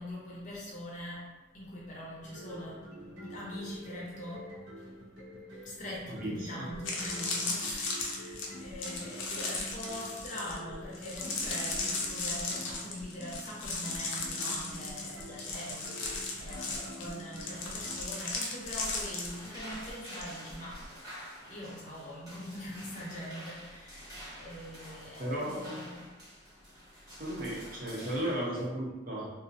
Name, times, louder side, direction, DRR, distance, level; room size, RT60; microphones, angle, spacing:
voice 1, 0.0-5.0 5.5-26.1 26.5-26.7, left 1 dB, 40° left, -5 dB, 0.5 m, -43 dB
sound 1, 2.2-18.0, equal, 75° right, 0.9 m, -47 dB
voice 2, 6.1-6.5 25.2-25.9 27.2-29.3, right 1 dB, 45° right, -5 dB, 0.6 m, -35 dB
sound 2, 6.2-6.3 6.7-20.2 20.5-20.8, left 3 dB, 85° left, 0.5 m, -36 dB
sound 3, 15.6-28.6, equal, 20° right, 0.8 m, -50 dB
2.4 x 2.0 x 2.6 m, 1.1 s
head